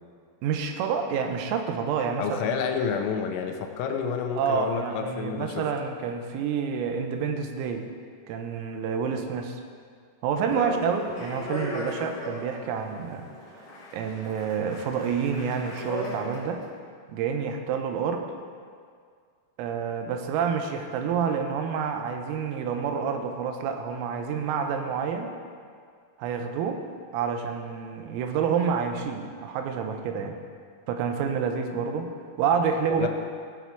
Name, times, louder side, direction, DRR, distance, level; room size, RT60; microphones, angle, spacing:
voice 1, 0.4-2.6 4.4-7.9 8.3-9.6 10.2-13.3 13.6-13.7 13.9-16.6 17.1-18.3 19.6-25.3 26.2-26.8 27.1-30.4 30.9-33.1, right 6 dB, 85° right, 5 dB, 3.6 m, -28 dB
voice 2, 2.2-5.7 10.5-10.8 11.1-11.3 33.0-33.1, left 6 dB, 80° left, 4 dB, 3.5 m, -30 dB
Speech, 10.8-16.6, left 1 dB, 60° left, 1.3 m, -38 dB
16.0 x 7.4 x 4.6 m, 2.1 s
omnidirectional pair, 5.9 m